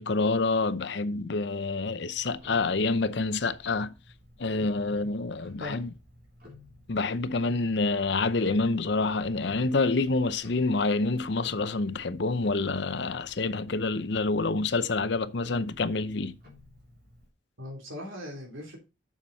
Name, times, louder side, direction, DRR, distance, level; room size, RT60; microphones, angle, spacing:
voice 1, 0.0-3.9 4.4-5.9 6.9-16.3, left 3 dB, 60° left, 0.7 m, -27 dB
Tick-tock, 2.1-17.3, left 2 dB, 50° right, 3.1 m, -54 dB
voice 2, 5.6-6.0 17.6-18.8, left 1 dB, 90° right, 3.2 m, -40 dB
7.3 x 7.2 x 4.0 m
head